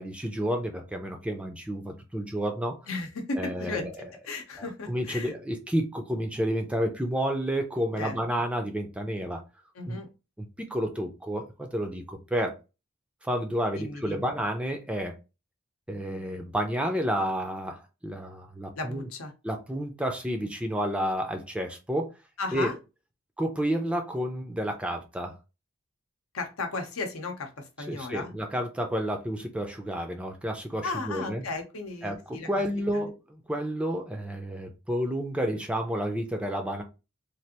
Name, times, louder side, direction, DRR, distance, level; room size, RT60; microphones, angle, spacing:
voice 1, 0.0-2.8 3.4-3.9 4.6-9.4 9.9-10.0 10.4-12.6 13.2-15.2 15.9-19.1 19.4-22.1 22.5-22.7 23.4-25.4 27.9-31.4 32.0-33.2 33.5-36.8, equal, 5° right, 0.4 m, -30 dB
voice 2, 2.9-5.3 8.0-8.1 9.7-10.1 13.8-14.3 18.7-19.3 22.4-22.8 26.3-28.3 30.8-32.6 32.9-33.0, left 3 dB, 75° left, 0.8 m, -35 dB
3.2 x 2.5 x 2.8 m
head